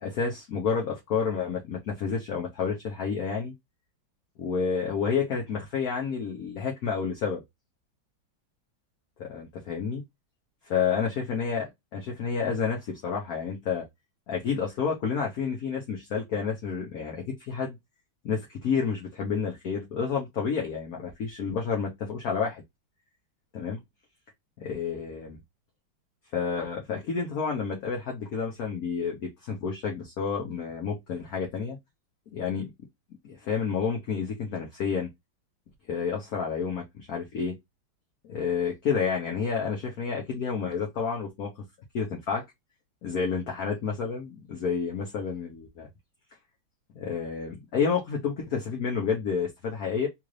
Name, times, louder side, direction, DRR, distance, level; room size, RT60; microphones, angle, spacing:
voice 1, 0.0-3.5 4.4-7.4 9.2-10.0 10.7-13.8 14.3-17.8 18.2-22.6 23.5-23.8 24.6-25.4 26.3-31.8 32.3-32.7 33.2-35.1 35.9-37.5 38.2-41.6 41.9-42.4 43.0-45.9 46.9-50.1, left 6 dB, 55° left, 1.2 m, -30 dB
3.8 x 2.5 x 3.1 m
omnidirectional pair, 2.2 m